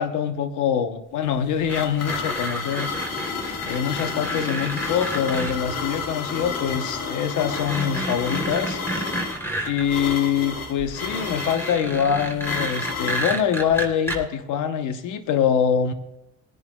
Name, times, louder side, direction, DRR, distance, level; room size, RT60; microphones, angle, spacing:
voice 1, 0.0-2.9 3.6-8.8 9.6-15.9, left 8 dB, 85° left, 9 dB, 1.0 m, -24 dB
sound 1, 1.2-13.4, left 5 dB, 55° left, 1.9 m, -31 dB
sound 2, 1.7-5.5 6.7-6.8 7.3-9.8 10.8-14.2, right 1 dB, 10° left, 3.1 m, -31 dB
22.0 x 11.0 x 2.3 m, 0.88 s
cardioid pair, 90°, 30 cm